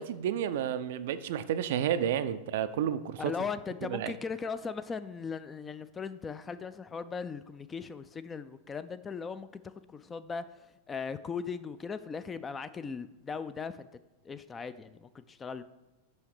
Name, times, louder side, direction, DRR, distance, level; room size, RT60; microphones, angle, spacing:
voice 1, 0.0-3.3 3.9-4.2, right 9 dB, 55° right, 13 dB, 0.4 m, -31 dB
voice 2, 3.2-9.6 9.9-10.4 10.9-13.9 14.2-15.6, left 5 dB, 20° left, 13 dB, 0.3 m, -38 dB
6.2 x 5.7 x 4.8 m, 1.1 s
figure-of-eight pair, 90°, 0 cm